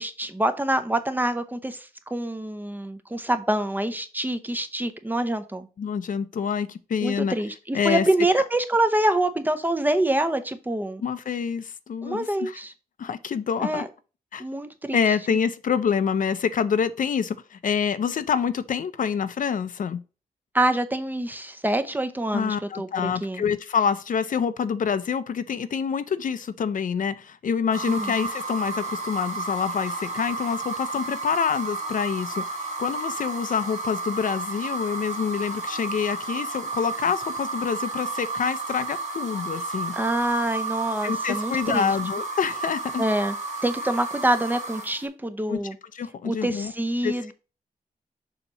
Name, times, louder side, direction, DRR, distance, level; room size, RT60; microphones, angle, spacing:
voice 1, 0.0-5.7 7.0-11.0 12.0-12.7 13.6-13.9 14.4-15.0 20.5-23.4 27.9-28.1 39.9-42.0 43.0-43.4 43.6-45.8 46.2-47.3, right 1 dB, 10° right, 0.6 m, -26 dB
voice 2, 5.8-7.4 7.7-8.1 11.0-12.6 13.0-13.8 14.3-14.4 14.9-20.0 22.3-39.9 41.0-43.0 45.5-45.6 45.9-46.7 47.0-47.3, left 7 dB, 60° left, 0.5 m, -26 dB
sound 1, 27.7-45.0, right 3 dB, 50° right, 2.3 m, -32 dB
7.0 x 2.9 x 5.5 m
wide cardioid pair, 175°, 15 cm